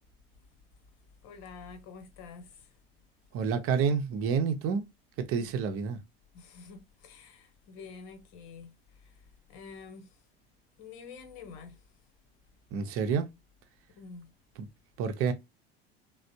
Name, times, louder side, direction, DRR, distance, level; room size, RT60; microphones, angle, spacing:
voice 1, 1.2-2.7 5.4-5.5 6.3-8.7 9.0-9.1 9.5-10.1 10.8-11.8 14.0-14.3, left 5 dB, 60° left, 1.0 m, -48 dB
voice 2, 3.3-4.8 5.3-6.0 12.7-13.3 14.6-14.7 15.0-15.3, right 6 dB, 45° right, 0.7 m, -28 dB
3.3 x 2.1 x 2.7 m
hypercardioid pair, 70°, 31 cm